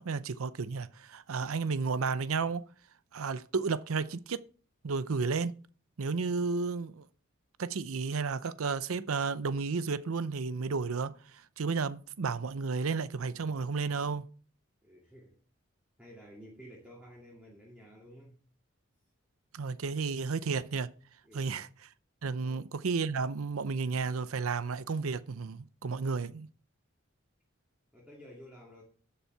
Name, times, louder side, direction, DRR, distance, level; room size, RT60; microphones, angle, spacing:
voice 1, 0.0-2.7 3.1-4.4 4.8-5.6 6.0-7.0 7.6-11.2 11.6-14.3 19.5-20.9 21.3-21.7 22.2-26.5, right 4 dB, 90° right, 0.6 m, -32 dB
voice 2, 14.8-15.3 16.0-18.4 21.2-21.6 22.4-22.6 27.9-28.8, equal, 5° right, 2.5 m, -52 dB
12.0 x 7.4 x 4.5 m
head